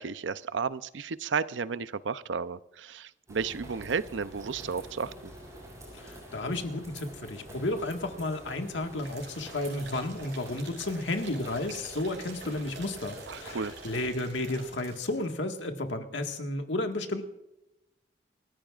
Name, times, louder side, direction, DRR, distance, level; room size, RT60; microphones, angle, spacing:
voice 1, 0.0-5.3 13.3-13.7, right 5 dB, 85° right, 15 dB, 0.6 m, -33 dB
sound 1, 3.3-14.1, equal, 15° right, 6.3 m, -47 dB
voice 2, 5.9-17.2, left 2 dB, 85° left, 4 dB, 1.7 m, -32 dB
sound 2, 9.0-15.3 15.5-15.6, right 3 dB, 65° right, 6.1 m, -47 dB
28.5 x 14.0 x 2.5 m, 0.92 s
head